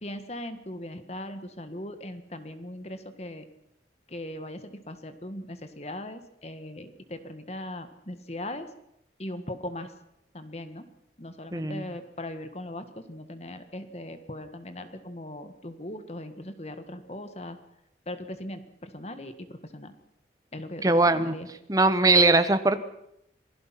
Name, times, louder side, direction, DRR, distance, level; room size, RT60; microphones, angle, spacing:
voice 1, 0.0-3.5 4.1-8.7 9.2-9.9 10.3-10.9 11.2-17.6 18.0-19.9 20.5-21.5, left 1 dB, 35° left, 9 dB, 1.7 m, -39 dB
voice 2, 11.5-11.9 20.8-21.4 21.7-22.8, right 2 dB, 20° right, 10 dB, 1.3 m, -21 dB
27.0 x 17.5 x 5.9 m, 0.79 s
head